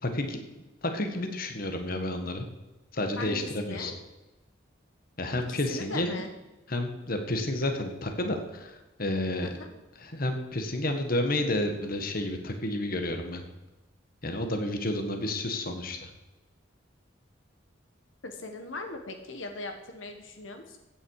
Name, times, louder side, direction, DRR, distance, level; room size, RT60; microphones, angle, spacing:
voice 1, 0.0-2.4 2.9-4.0 5.2-6.2 6.7-9.5 10.0-13.4 14.2-16.1, left 1 dB, 50° left, 5 dB, 1.7 m, -31 dB
voice 2, 3.2-3.9 5.5-6.3 9.4-9.7 18.2-20.8, left 2 dB, 80° left, 6 dB, 1.5 m, -39 dB
15.5 x 9.4 x 4.9 m, 1.1 s
head